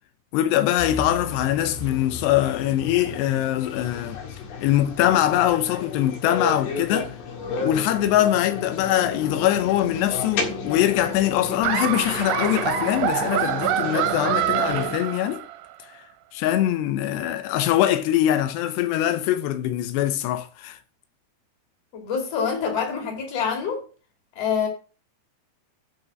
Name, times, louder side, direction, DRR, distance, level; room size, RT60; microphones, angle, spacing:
voice 1, 0.3-4.2 4.6-7.1 7.6-15.4 16.3-20.8, left 12 dB, 90° left, 2.9 m, -23 dB
sound 1, 0.8-14.9, left 4 dB, 60° left, 3.3 m, -33 dB
Laughter, 11.6-15.7, right 11 dB, 80° right, 3.0 m, -25 dB
voice 2, 21.9-23.8 24.3-24.7, left 6 dB, 40° left, 3.2 m, -26 dB
8.9 x 5.5 x 6.1 m
omnidirectional pair, 4.7 m